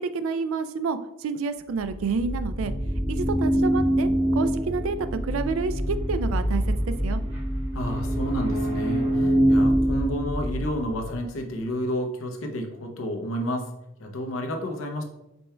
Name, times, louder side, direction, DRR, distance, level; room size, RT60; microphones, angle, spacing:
voice 1, 0.0-2.7 3.1-6.6 7.0-7.2, right 4 dB, 90° right, 11 dB, 0.4 m, -29 dB
sound 1, 1.8-11.1, equal, 30° right, 1.3 m, -25 dB
voice 2, 7.7-13.7 14.0-15.0, equal, 90° left, 3 dB, 0.7 m, -30 dB
5.3 x 4.3 x 2.2 m, 0.90 s
head